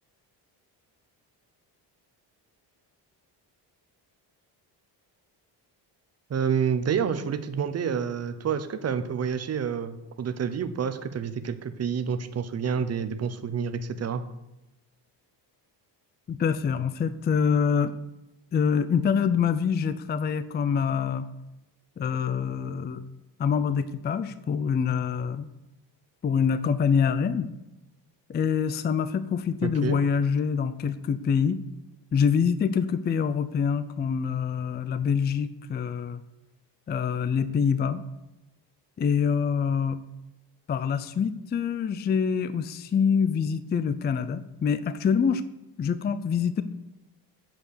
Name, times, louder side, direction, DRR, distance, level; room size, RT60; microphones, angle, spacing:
voice 1, 6.3-14.2 29.6-30.0, right 7 dB, 35° right, 9 dB, 0.8 m, -28 dB
voice 2, 16.3-17.9 18.5-21.3 22.0-23.0 23.4-25.5 26.2-27.5 28.3-31.6 32.1-36.2 36.9-38.0 39.0-40.0 40.7-45.4 45.8-46.6, left 6 dB, 25° left, 13 dB, 0.4 m, -25 dB
8.1 x 7.5 x 6.7 m, 0.98 s
cardioid pair, 140°, 43 cm